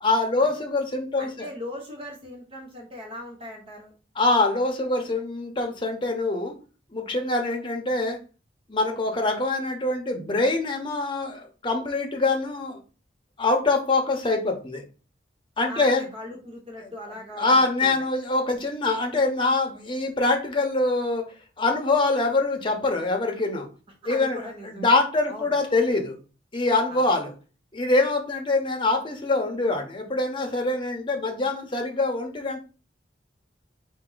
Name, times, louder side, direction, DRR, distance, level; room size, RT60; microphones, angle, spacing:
voice 1, 0.0-1.5 4.2-6.5 6.9-8.2 8.7-12.8 13.4-14.8 15.6-16.1 17.4-21.3 21.6-23.7 24.1-24.4 24.7-26.1 26.5-27.3 27.7-32.6, left 2 dB, 25° left, 2 dB, 0.9 m, -24 dB
voice 2, 1.2-3.9 15.7-18.1 24.0-24.9 25.3-25.5 26.9-27.0, left 1 dB, 30° right, 0 dB, 0.9 m, -39 dB
4.5 x 2.7 x 3.8 m, 0.35 s
head